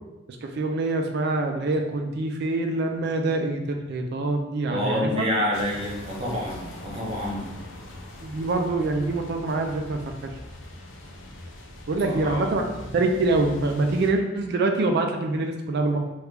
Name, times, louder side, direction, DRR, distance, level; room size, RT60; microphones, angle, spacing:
voice 1, 0.4-5.3 8.2-10.3 11.9-12.6 12.9-16.0, right 2 dB, 55° right, 4 dB, 0.3 m, -25 dB
voice 2, 4.7-7.4 12.0-12.5, equal, 30° right, -3 dB, 0.7 m, -28 dB
sound 1, 5.5-14.1, left 1 dB, 75° left, 0.5 m, -41 dB
2.9 x 2.4 x 3.3 m, 1.0 s
head